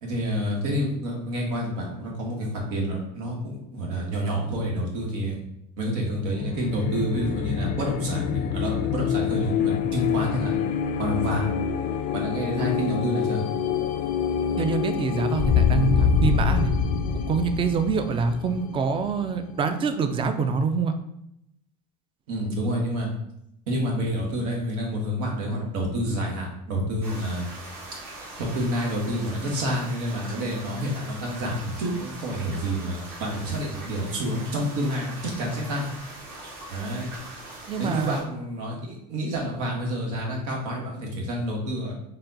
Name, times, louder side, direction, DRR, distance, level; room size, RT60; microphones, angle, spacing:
voice 1, 0.0-5.4 5.8-10.5 11.0-11.5 12.1-13.4 22.3-23.1 23.7-27.5 28.4-35.8 36.7-37.1 37.8-41.9, equal, 90° right, -1 dB, 1.2 m, -28 dB
sound 1, 6.1-19.6, left 7 dB, 40° left, 0.4 m, -26 dB
voice 2, 14.6-16.7 17.1-20.9 37.7-38.3, right 5 dB, 25° right, 9 dB, 0.4 m, -25 dB
sound 2, 27.0-38.2, right 2 dB, 50° right, 1.4 m, -41 dB
4.1 x 2.2 x 3.8 m, 0.78 s
supercardioid pair, 105°, 20 cm